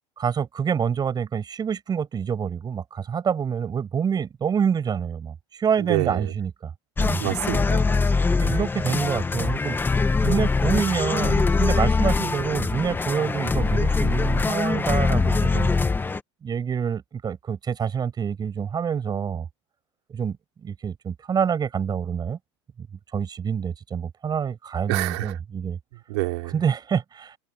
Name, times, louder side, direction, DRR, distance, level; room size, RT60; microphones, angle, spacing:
voice 1, 0.2-6.7 7.0-7.2 8.4-9.8 10.2-15.7 16.4-19.5 20.1-20.4 20.6-22.4 22.8-22.9 23.1-25.8 26.5-27.4, right 7 dB, 30° right, 7.6 m, -27 dB
voice 2, 5.8-6.3 7.2-8.0 24.9-25.4 26.1-26.5, right 23 dB, 75° right, 3.7 m, -27 dB
sound 1, 7.0-16.2, left 4 dB, 15° left, 1.3 m, -23 dB
open air
supercardioid pair, 110°, 15 cm